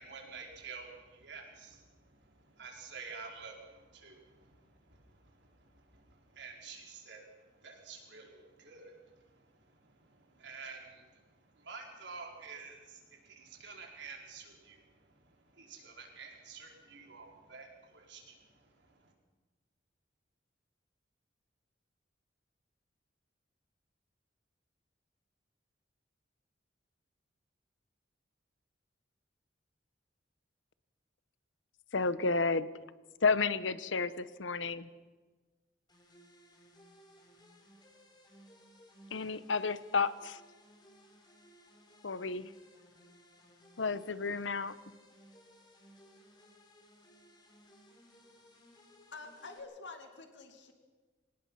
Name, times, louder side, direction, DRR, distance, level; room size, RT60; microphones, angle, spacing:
voice 1, 0.0-19.1, right 4 dB, 70° right, 1 dB, 4.8 m, -50 dB
voice 2, 31.9-32.7 33.2-34.9 39.1-40.4 42.0-42.5 43.8-44.7, left 4 dB, 90° left, 15 dB, 1.0 m, -31 dB
sound 1, 35.9-49.6, equal, 25° left, 3.7 m, -60 dB
voice 3, 49.1-50.7, left 3 dB, 70° left, 5 dB, 2.3 m, -48 dB
24.5 x 19.0 x 5.8 m, 1.3 s
head